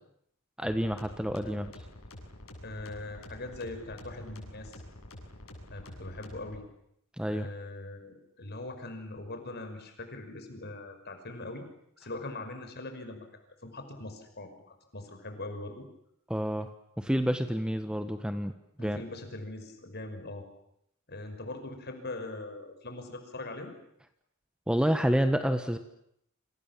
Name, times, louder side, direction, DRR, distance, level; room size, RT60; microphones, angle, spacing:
sound 1, 0.6-6.6, left 1 dB, 70° left, 7.8 m, -48 dB
voice 1, 0.6-1.7 7.2-7.5 16.3-16.7 17.0-18.5 18.8-19.0 24.7-25.8, equal, 5° right, 8 dB, 1.2 m, -28 dB
voice 2, 2.6-4.8 5.7-6.6 7.3-11.7 12.0-13.3 13.6-14.5 14.9-15.9 18.8-20.5 21.1-23.7, left 2 dB, 50° left, 7 dB, 5.8 m, -41 dB
28.5 x 27.0 x 7.4 m, 0.74 s
head